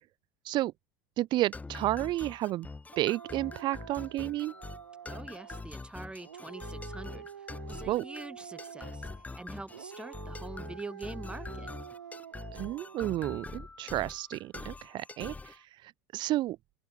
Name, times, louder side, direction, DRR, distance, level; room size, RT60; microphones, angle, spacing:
voice 1, 1.2-2.7 3.0-4.5 7.9-8.0 12.5-15.5 16.1-16.6, right 16 dB, 45° right, 0.9 m, -31 dB
sound 1, 1.5-15.6, left 3 dB, 15° left, 2.7 m, -44 dB
Dog, 2.9-5.7 6.2-9.3 9.7-13.2, right 9 dB, 80° right, 1.3 m, -48 dB
voice 2, 5.0-9.1 9.3-11.7, right 2 dB, 10° right, 3.6 m, -45 dB
hypercardioid pair, 80°, 11 cm